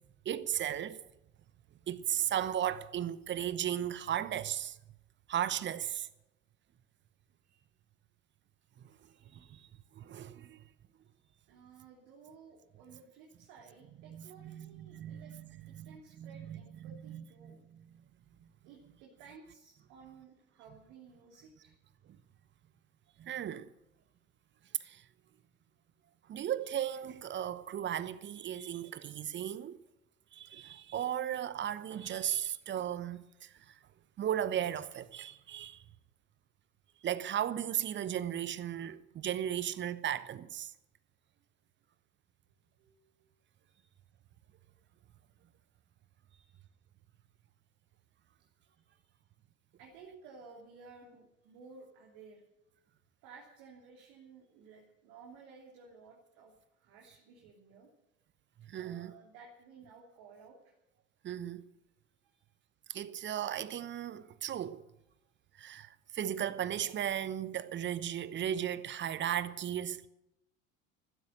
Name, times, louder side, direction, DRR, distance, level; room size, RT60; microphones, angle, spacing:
voice 1, 0.2-1.0 1.9-4.8 5.3-6.1 8.8-9.0 9.3-10.6 13.9-17.9 20.7-20.8 23.2-23.7 24.8-25.1 26.3-29.8 30.3-33.8 34.2-35.8 37.0-40.7 58.6-59.1 61.2-61.6 62.9-64.8 65.6-70.1, right 10 dB, 30° right, 1.0 m, -36 dB
voice 2, 9.0-9.6 11.2-15.4 15.7-17.6 18.6-21.7 42.8-43.3 43.7-43.9 46.3-46.6 48.6-49.1 49.8-52.4 53.2-57.9 58.8-60.7 62.2-62.4, right 5 dB, 55° right, 3.2 m, -56 dB
15.5 x 12.5 x 6.6 m
figure-of-eight pair, 70°, 39 cm